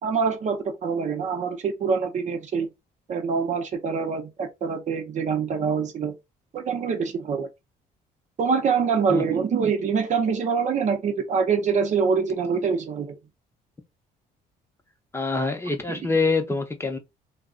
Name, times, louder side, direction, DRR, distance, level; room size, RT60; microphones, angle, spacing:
voice 1, 0.0-2.7 3.1-6.2 6.5-7.5 8.4-13.2 15.9-16.0, right 5 dB, 45° right, 0.6 m, -25 dB
voice 2, 15.1-17.0, left 3 dB, 15° left, 0.6 m, -25 dB
2.3 x 2.0 x 3.6 m
cardioid pair, 110°, 17 cm